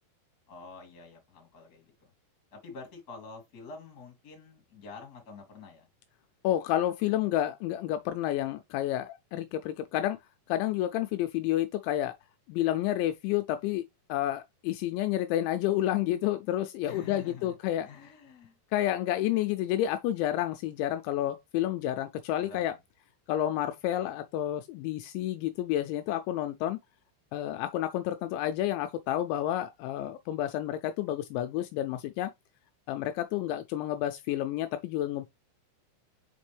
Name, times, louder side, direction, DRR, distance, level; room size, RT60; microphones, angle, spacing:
voice 1, 0.5-2.1 2.5-5.9 16.8-17.5 17.8-18.6 22.4-22.8, left 4 dB, 30° left, 2.0 m, -47 dB
voice 2, 6.4-10.2 10.5-12.1 12.5-13.8 14.1-17.9 18.7-22.7 23.3-26.8 27.3-32.3 32.9-35.3, left 13 dB, 85° left, 2.8 m, -30 dB
5.9 x 5.2 x 3.3 m
omnidirectional pair, 5.4 m